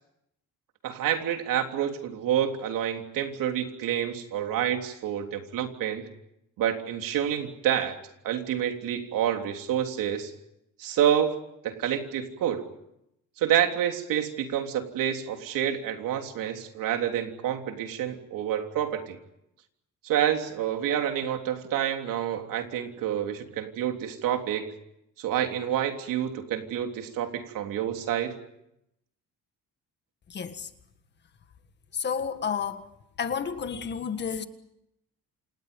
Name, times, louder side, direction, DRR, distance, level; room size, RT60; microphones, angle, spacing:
voice 1, 0.8-6.0 6.6-8.0 8.2-10.3 10.8-11.4 11.6-12.6 13.4-19.2 20.0-24.7 25.2-28.3, right 10 dB, 80° right, 3.5 m, -28 dB
voice 2, 30.3-30.7 31.9-32.8 33.2-34.4, left 6 dB, 35° left, 1.7 m, -31 dB
28.5 x 28.5 x 5.4 m
cardioid pair, 175°, 32 cm